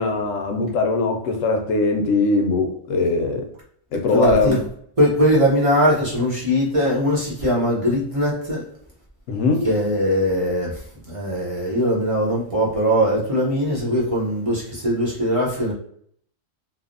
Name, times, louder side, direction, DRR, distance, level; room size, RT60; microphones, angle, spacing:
voice 1, 0.0-3.4 3.9-4.6 9.3-9.6, left 3 dB, 85° left, 4 dB, 1.0 m, -21 dB
voice 2, 4.1-4.6 5.0-8.6 9.6-15.7, equal, 35° right, -6 dB, 0.7 m, -20 dB
3.2 x 2.0 x 2.5 m, 0.65 s
omnidirectional pair, 1.3 m